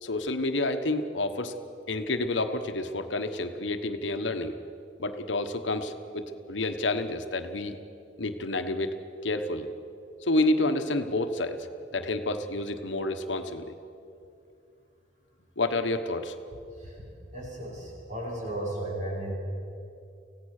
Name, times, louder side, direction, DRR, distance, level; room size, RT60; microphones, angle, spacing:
voice 1, 0.0-1.5 1.9-4.5 5.0-7.8 8.2-8.9 9.2-9.7 10.2-11.6 11.9-13.7 15.6-16.3, left 2 dB, 80° left, 8 dB, 1.2 m, -29 dB
voice 2, 17.3-19.3, right 1 dB, 45° right, -3 dB, 6.4 m, -35 dB
25.5 x 16.5 x 6.6 m, 2.6 s
head